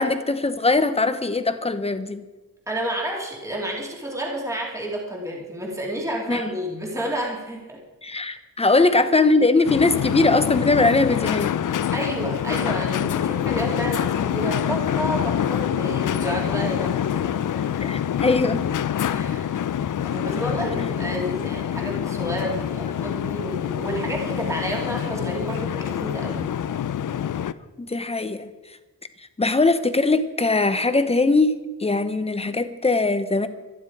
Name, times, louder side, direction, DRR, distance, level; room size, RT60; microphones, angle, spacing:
voice 1, 0.0-2.2 6.3-6.4 8.0-11.5 17.8-18.6 27.8-28.5 29.4-33.5, left 3 dB, 15° left, 11 dB, 0.9 m, -21 dB
voice 2, 2.7-7.8 8.7-8.8 11.9-17.8 19.1-19.6 20.0-26.5, equal, 10° right, -1 dB, 2.5 m, -30 dB
sound 1, 9.7-27.5, left 9 dB, 60° left, 0.6 m, -26 dB
25.0 x 10.0 x 4.8 m, 1.2 s
wide cardioid pair, 155°, 35 cm